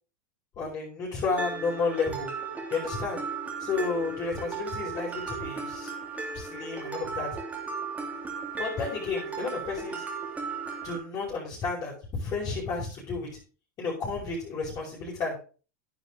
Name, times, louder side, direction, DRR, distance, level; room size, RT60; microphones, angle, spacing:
voice 1, 0.6-2.3 2.7-3.2 3.6-5.9 6.3-7.3 8.6-10.0 10.8-13.3 13.8-15.4, left 4 dB, 35° left, -7 dB, 5.6 m, -31 dB
Mallet percussion, 1.4-11.0, right 5 dB, 15° right, 3.2 m, -36 dB
10.5 x 9.3 x 3.8 m, 0.37 s
hypercardioid pair, 115°, 10 cm